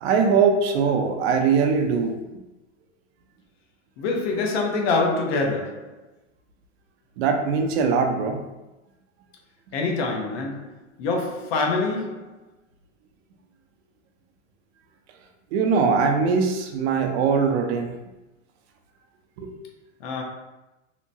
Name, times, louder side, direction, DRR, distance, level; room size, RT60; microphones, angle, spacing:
voice 1, 0.0-2.2 7.2-8.4 15.5-17.9 19.4-19.5, right 5 dB, 55° right, 4 dB, 0.6 m, -21 dB
voice 2, 4.0-5.9 9.7-10.7 11.0-12.4 20.0-20.2, left 3 dB, 50° left, 1 dB, 0.7 m, -25 dB
2.8 x 2.2 x 2.6 m, 1.0 s
hypercardioid pair, 120°, 38 cm